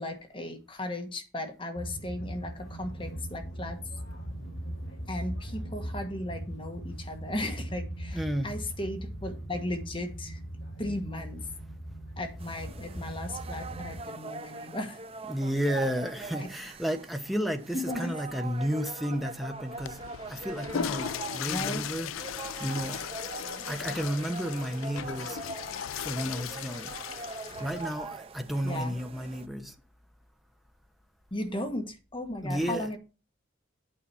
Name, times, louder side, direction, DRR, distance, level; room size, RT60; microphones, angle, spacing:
voice 1, 0.0-3.8 5.1-10.4 10.8-11.5 12.2-15.0 17.9-18.1 21.5-21.8 28.6-28.9 31.3-33.0, left 1 dB, 25° left, 1.4 m, -36 dB
sound 1, 1.7-14.0, right 1 dB, 70° left, 4.1 m, -39 dB
voice 2, 8.1-8.5 15.3-20.0 20.3-23.0 23.7-25.4 26.0-27.0 27.6-29.7 32.4-32.9, equal, ahead, 0.9 m, -32 dB
sound 2, 12.4-29.5, right 3 dB, 30° right, 0.5 m, -42 dB
Water / Toilet flush, 19.7-28.1, left 9 dB, 85° left, 0.4 m, -37 dB
8.7 x 4.9 x 7.1 m
head